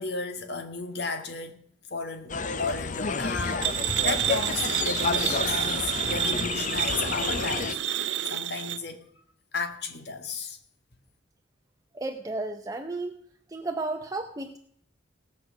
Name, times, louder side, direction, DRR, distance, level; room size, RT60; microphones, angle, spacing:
voice 1, 0.0-1.6 1.9-7.8 8.2-9.0 9.5-10.6, left 3 dB, 60° left, 1.6 m, -33 dB
sound 1, 2.3-7.7, left 5 dB, 40° left, 0.6 m, -30 dB
sound 2, 3.6-8.8, right 12 dB, 70° right, 0.5 m, -29 dB
voice 2, 11.9-13.2 13.5-14.6, right 2 dB, 20° right, 0.7 m, -33 dB
17.5 x 6.3 x 7.7 m
head